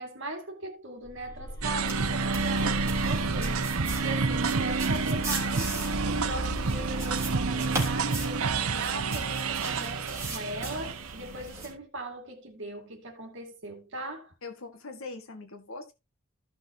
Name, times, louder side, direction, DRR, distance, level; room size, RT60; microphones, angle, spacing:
voice 1, 0.0-3.8 4.0-5.7 6.0-14.3, right 1 dB, 60° right, 2.3 m, -39 dB
sound 1, 1.0-9.9, equal, 15° left, 3.8 m, -40 dB
sound 2, 1.6-11.7, right 4 dB, 85° right, 0.8 m, -29 dB
sound 3, 1.8-11.7, right 2 dB, 10° right, 3.4 m, -38 dB
voice 2, 14.4-15.9, left 3 dB, 75° left, 2.0 m, -41 dB
15.0 x 6.0 x 2.9 m
head